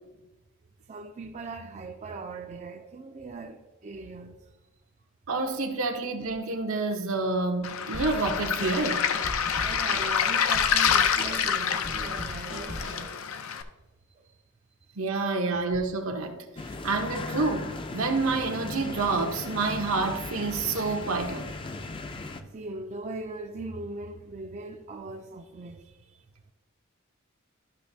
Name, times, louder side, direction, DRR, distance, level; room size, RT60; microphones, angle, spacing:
voice 1, 0.9-4.4 9.6-13.2 14.2-14.3 22.5-26.1, right 3 dB, 35° right, 0.4 m, -40 dB
voice 2, 5.3-9.1 15.0-16.4 16.8-21.5, right 3 dB, 80° right, 1.0 m, -28 dB
Waves surf, 7.6-13.6, left 7 dB, 80° left, 0.5 m, -27 dB
Drum kit / Snare drum, 7.9-13.1, left 1 dB, 65° left, 1.3 m, -39 dB
sound 1, 16.6-22.4, left 3 dB, 25° left, 0.4 m, -37 dB
12.0 x 5.9 x 2.7 m
head